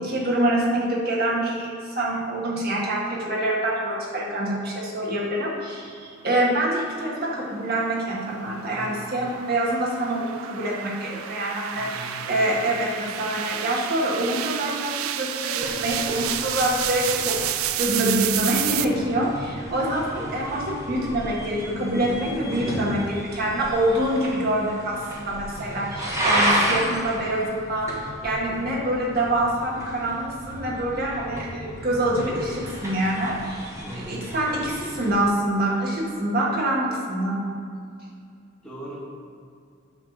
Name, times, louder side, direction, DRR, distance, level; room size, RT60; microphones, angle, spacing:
voice 1, 0.0-27.9 28.2-33.7 34.0-37.5, right 1 dB, 50° right, -4 dB, 1.6 m, -26 dB
sound 1, 6.8-18.8, right 11 dB, 85° right, 0.4 m, -31 dB
voice 2, 8.7-9.0 11.7-12.4 20.2-20.5 33.8-34.2 38.6-39.1, equal, 5° left, -6 dB, 1.1 m, -39 dB
sound 2, 15.6-35.3, right 1 dB, 15° right, 1.1 m, -32 dB
9.5 x 3.2 x 6.4 m, 2.4 s
head